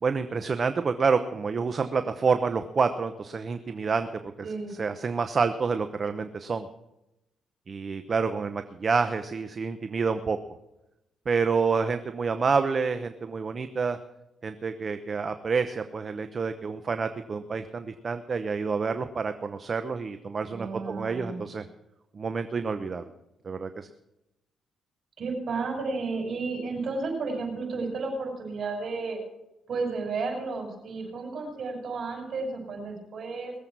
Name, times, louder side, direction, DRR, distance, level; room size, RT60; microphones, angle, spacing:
voice 1, 0.0-6.7 7.7-10.4 11.3-14.0 14.4-21.7 22.1-23.1 23.4-23.9, right 5 dB, 40° right, 10 dB, 0.9 m, -28 dB
voice 2, 20.5-21.4 25.2-29.2 29.7-33.5, right 3 dB, 55° right, 2 dB, 6.1 m, -32 dB
20.5 x 7.8 x 6.1 m, 0.91 s
cardioid pair, 90°, 0 cm